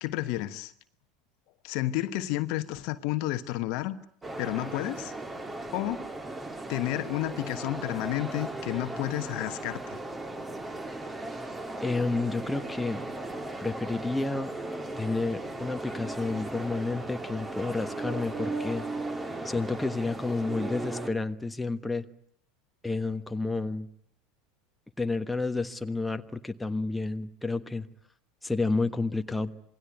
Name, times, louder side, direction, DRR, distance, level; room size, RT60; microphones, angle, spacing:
voice 1, 0.0-0.7 1.6-4.0 4.4-5.1 5.7-6.1 6.7-10.0, left 15 dB, 55° left, 1.2 m, -31 dB
sound 1, 4.2-21.1, right 2 dB, 15° right, 2.5 m, -37 dB
voice 2, 11.8-13.0 13.6-14.5 15.0-18.8 19.4-22.1 22.8-23.9 25.0-27.9 28.4-29.5, left 3 dB, 5° left, 1.3 m, -30 dB
27.0 x 20.5 x 9.4 m
figure-of-eight pair, 75°, 0 cm